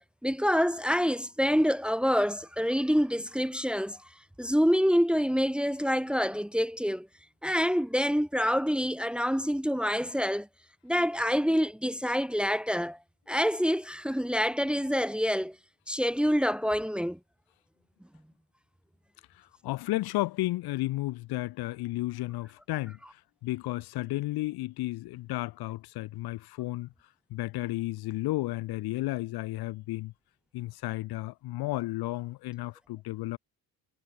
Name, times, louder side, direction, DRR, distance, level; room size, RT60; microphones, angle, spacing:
voice 1, 0.0-4.0 4.4-7.1 7.4-10.5 10.8-13.0 13.3-15.6 15.9-17.2, equal, 5° right, 1.2 m, -27 dB
voice 2, 19.4-26.9 27.3-30.1 30.5-33.4, left 18 dB, 80° left, 2.0 m, -33 dB
cardioid pair, 100°, 37 cm